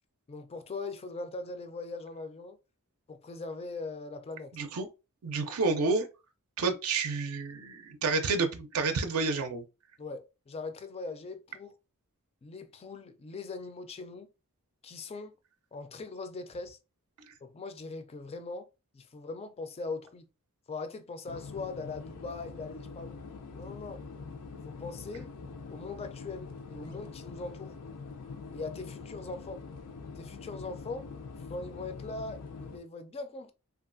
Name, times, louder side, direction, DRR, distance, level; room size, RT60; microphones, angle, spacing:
voice 1, 0.3-2.6 3.1-4.6 10.0-11.7 12.4-14.3 14.8-15.4 15.7-16.8 17.4-18.7 18.9-20.3 20.7-23.2 23.5-24.0 24.7-25.3 25.7-27.8 28.5-29.6 30.2-31.1 31.5-33.5, left 3 dB, 25° left, 0.3 m, -40 dB
voice 2, 4.5-4.9 5.2-6.1 6.6-9.6, right 4 dB, 70° right, 0.5 m, -29 dB
Airplane atmos, 21.3-32.8, left 4 dB, 90° left, 0.5 m, -44 dB
3.0 x 2.3 x 2.5 m
head